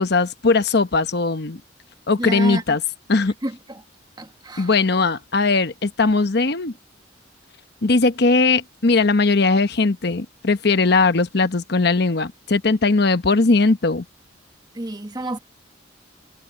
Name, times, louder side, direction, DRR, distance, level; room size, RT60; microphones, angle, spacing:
voice 1, 0.0-1.6 2.1-2.8 3.1-3.3 4.6-6.7 7.8-14.0, left 3 dB, 60° left, 1.0 m, -19 dB
voice 2, 2.2-2.6 3.4-3.5 4.2-4.7 14.7-15.4, right 2 dB, 20° right, 1.5 m, -29 dB
head